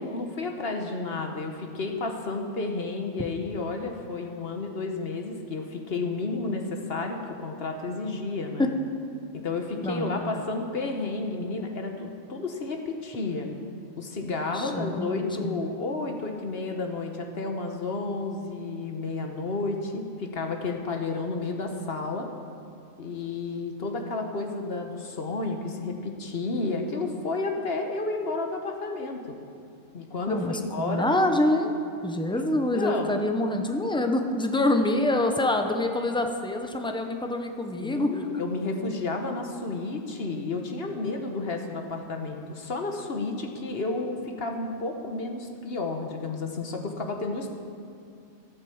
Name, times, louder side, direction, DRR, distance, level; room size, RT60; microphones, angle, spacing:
voice 1, 0.0-8.7 9.3-13.5 14.0-22.3 23.0-29.4 29.9-31.1 32.3-32.4 32.7-33.1 37.8-47.5, left 3 dB, 50° left, 4 dB, 1.2 m, -31 dB
voice 2, 9.8-10.4 14.5-15.6 30.3-31.7 32.0-38.1, left 1 dB, 5° left, 4 dB, 0.5 m, -26 dB
13.5 x 8.4 x 7.1 m, 2.4 s
omnidirectional pair, 1.3 m